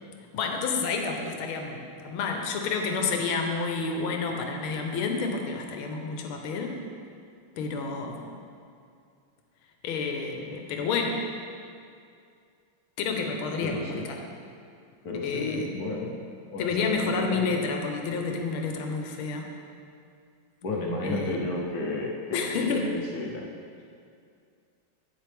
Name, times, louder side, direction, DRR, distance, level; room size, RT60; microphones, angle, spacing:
voice 1, 0.3-6.7 7.6-8.3 9.8-11.2 13.0-14.2 15.2-15.7 16.6-19.5 21.0-21.4 22.3-22.9, left 4 dB, 90° left, 3 dB, 1.6 m, -29 dB
voice 2, 13.6-14.1 15.0-16.2 16.5-17.6 20.6-23.5, left 2 dB, 55° left, -2 dB, 1.2 m, -32 dB
9.8 x 7.6 x 3.4 m, 2.4 s
omnidirectional pair, 2.3 m